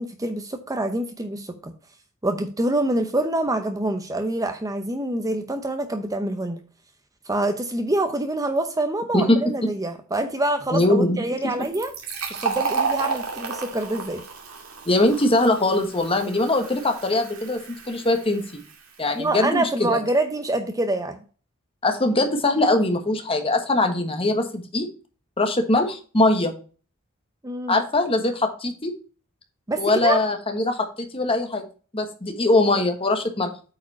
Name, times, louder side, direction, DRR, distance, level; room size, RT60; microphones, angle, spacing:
voice 1, 0.0-1.7 2.2-6.6 7.3-11.9 12.4-14.2 19.1-21.2 27.4-27.8 29.7-30.2, right 1 dB, 15° right, 7 dB, 0.7 m, -26 dB
voice 2, 10.7-11.5 14.9-17.6 17.9-18.6 19.0-20.0 21.8-24.9 25.4-26.5 27.7-28.9 29.8-31.6 31.9-33.5, left 2 dB, 25° left, 5 dB, 1.4 m, -22 dB
Fill (with liquid), 11.6-19.0, right 5 dB, 90° right, 2.4 m, -32 dB
8.5 x 4.9 x 4.2 m, 0.37 s
head